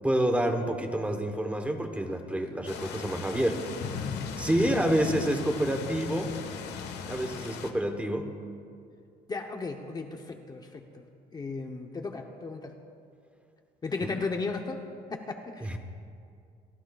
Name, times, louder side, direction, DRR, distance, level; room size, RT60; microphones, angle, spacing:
voice 1, 0.0-3.7 4.4-6.4 7.1-8.3 15.6-15.8, right 1 dB, 10° right, 5 dB, 1.1 m, -28 dB
sound 1, 2.7-7.7, left 6 dB, 80° left, 1.4 m, -37 dB
voice 2, 9.3-11.0 11.3-12.7 13.8-14.8 15.1-15.8, left 3 dB, 25° left, 3 dB, 0.8 m, -35 dB
29.5 x 14.5 x 2.4 m, 2.3 s
cardioid pair, 150°, 17 cm